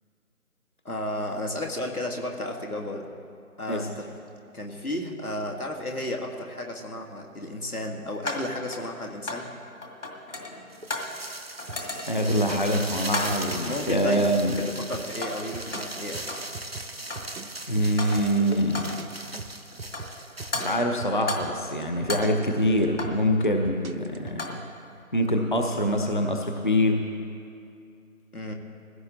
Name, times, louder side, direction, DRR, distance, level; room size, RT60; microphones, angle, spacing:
voice 1, 0.8-3.1 3.6-4.1 4.5-9.5 13.6-16.2 28.3-28.5, left 1 dB, 80° left, 2 dB, 2.3 m, -33 dB
sound 1, 6.0-6.1 8.3-9.5 9.8-11.2 11.6-12.3 13.1-13.5 14.2-14.6 14.9-16.5 16.8-17.4 17.8-18.4 18.7-19.1 19.7-20.2 20.5-21.7 22.0-23.3 24.1-24.7, left 2 dB, 55° left, 2.4 m, -35 dB
sound 2, 10.7-20.8, right 2 dB, 45° right, 0.6 m, -39 dB
sound 3, 11.7-24.5, right 3 dB, 70° right, 0.9 m, -40 dB
voice 2, 12.1-14.6 17.7-19.0 20.5-24.6 25.1-27.1, equal, 35° left, 3 dB, 0.7 m, -25 dB
20.0 x 16.0 x 3.9 m, 2.5 s
figure-of-eight pair, 160°, 44 cm